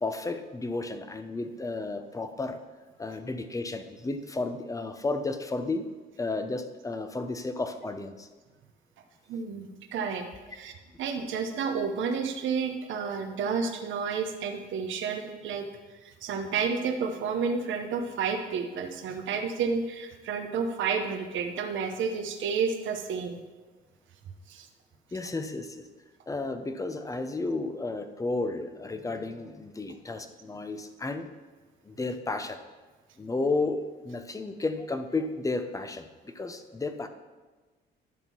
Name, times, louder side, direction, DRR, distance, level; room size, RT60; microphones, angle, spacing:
voice 1, 0.0-2.6 3.0-5.9 6.2-8.3 12.9-13.1 25.1-25.9 26.3-31.3 31.8-32.6 33.2-37.1, left 3 dB, 15° left, 8 dB, 0.7 m, -32 dB
voice 2, 9.3-10.7 11.0-23.4 24.5-24.7, right 5 dB, 75° right, 4 dB, 0.9 m, -31 dB
11.0 x 3.7 x 6.1 m, 1.3 s
cardioid pair, 90°, 20 cm